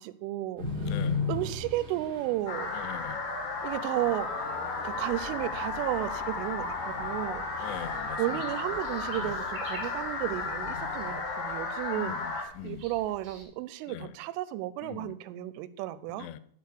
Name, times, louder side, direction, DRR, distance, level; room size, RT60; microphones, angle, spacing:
voice 1, 0.0-0.7 1.3-2.7 3.6-4.3 4.8-7.8 8.2-12.2 12.6-16.3, right 15 dB, 90° right, 15 dB, 3.2 m, -33 dB
Underground Water Pumping Noise, 0.6-11.1, left 4 dB, 15° right, 2.7 m, -39 dB
voice 2, 0.8-1.2 2.7-3.2 7.6-8.4 9.1-9.4 11.9-12.8 13.9-14.1 14.8-15.1 16.1-16.4, left 12 dB, 85° left, 15 dB, 2.9 m, -42 dB
sound 1, 2.5-12.4, left 4 dB, 65° left, 1.6 m, -34 dB
sound 2, 7.5-13.4, right 3 dB, 35° right, 3.9 m, -50 dB
10.5 x 4.8 x 6.6 m, 0.63 s
omnidirectional pair, 5.5 m